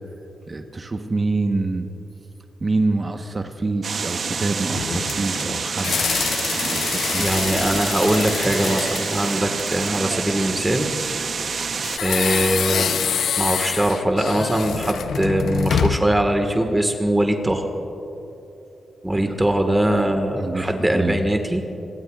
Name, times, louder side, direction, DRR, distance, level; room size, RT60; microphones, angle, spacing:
voice 1, 0.5-1.9 2.6-6.3 6.6-7.3 19.2-19.3 20.4-21.2, right 3 dB, 35° right, 5 dB, 1.1 m, -26 dB
sound 1, 3.8-12.0, right 5 dB, 60° right, 0.9 m, -27 dB
sound 2, 4.7-10.1 11.8-16.2, left 7 dB, 80° left, 0.6 m, -26 dB
voice 2, 7.2-10.9 11.5-12.9 13.3-17.7 19.0-21.6, right 1 dB, 15° right, 4 dB, 1.6 m, -22 dB
26.5 x 21.0 x 2.4 m, 3.0 s
cardioid pair, 75°, 0 cm